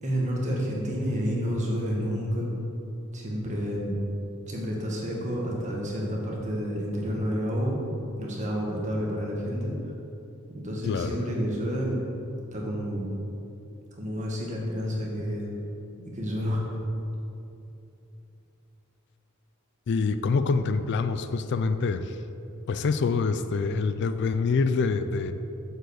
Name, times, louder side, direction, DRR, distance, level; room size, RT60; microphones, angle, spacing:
voice 1, 0.0-2.5 3.1-4.0 4.5-7.8 8.2-9.7 10.5-12.0 12.5-13.1 13.9-15.5 16.0-16.6, equal, 35° right, -2 dB, 1.7 m, -29 dB
voice 2, 10.8-11.2 19.9-22.2 22.7-25.3, left 4 dB, 55° left, 10 dB, 0.3 m, -26 dB
7.8 x 5.4 x 6.4 m, 2.8 s
head